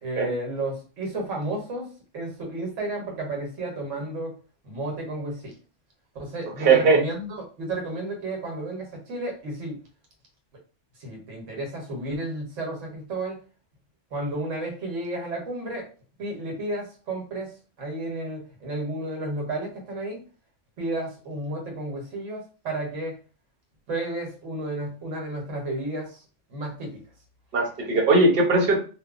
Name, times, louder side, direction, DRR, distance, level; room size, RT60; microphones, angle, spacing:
voice 1, 0.0-4.3 4.6-5.5 6.1-9.8 11.0-13.4 14.1-15.9 16.2-17.5 17.8-20.2 20.8-23.2 23.9-26.2 26.5-27.0, right 2 dB, 85° right, 0 dB, 1.3 m, -32 dB
voice 2, 6.6-7.0 27.5-28.8, right 3 dB, 55° right, 1 dB, 0.9 m, -19 dB
2.9 x 2.2 x 2.4 m, 0.37 s
omnidirectional pair, 1.2 m